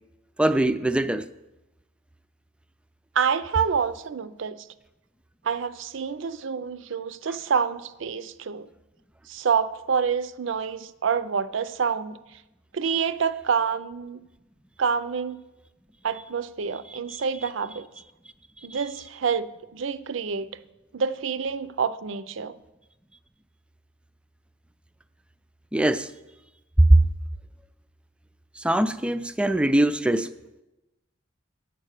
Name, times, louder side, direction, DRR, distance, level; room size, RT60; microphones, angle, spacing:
voice 1, 0.4-1.2 17.1-17.2 25.7-26.1 26.8-27.0 28.6-30.3, right 1 dB, 5° right, 0.3 m, -21 dB
voice 2, 3.2-4.6 5.4-8.7 9.3-12.2 12.7-14.2 14.8-15.4 16.0-17.9 18.6-20.5 20.9-22.6, right 6 dB, 65° right, 0.5 m, -27 dB
8.8 x 7.6 x 6.5 m
head